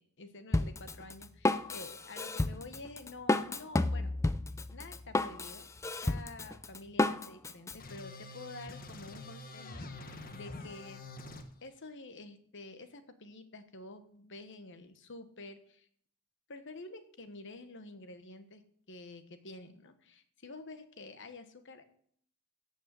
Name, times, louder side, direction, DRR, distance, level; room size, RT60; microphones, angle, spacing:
voice 1, 0.0-4.1 4.7-5.7 6.0-10.0 10.3-11.0 11.6-15.9 16.5-18.6 18.9-21.8, left 2 dB, 60° left, 9 dB, 1.3 m, -49 dB
Drum kit, 0.5-7.8, left 2 dB, 15° left, 0.4 m, -31 dB
sound 1, 7.8-11.4, left 2 dB, 40° left, 1.1 m, -46 dB
16.5 x 5.5 x 7.6 m, 0.63 s
head